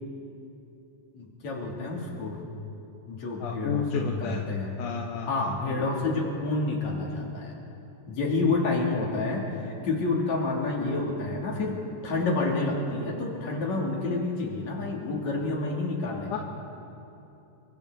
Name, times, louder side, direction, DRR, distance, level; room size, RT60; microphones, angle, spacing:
voice 1, 1.1-2.4 3.1-4.7 5.3-7.6 8.1-16.4, left 3 dB, 65° left, -2 dB, 4.2 m, -29 dB
voice 2, 3.4-4.4 4.8-5.9 16.3-16.4, left 6 dB, 85° left, 0 dB, 2.7 m, -32 dB
30.0 x 23.5 x 4.1 m, 2.9 s
omnidirectional pair, 3.4 m